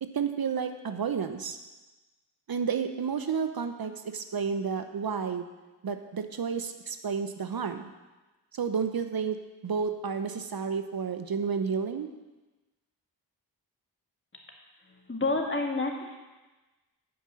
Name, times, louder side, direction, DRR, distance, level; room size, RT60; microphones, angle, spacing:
voice 1, 0.0-1.6 2.5-5.5 5.8-7.9 8.5-9.4 9.6-12.1, right 6 dB, 60° right, 8 dB, 0.7 m, -31 dB
voice 2, 15.1-16.2, left 2 dB, 30° left, 1 dB, 2.0 m, -29 dB
8.6 x 5.5 x 7.7 m, 1.1 s
cardioid pair, 40°, 40 cm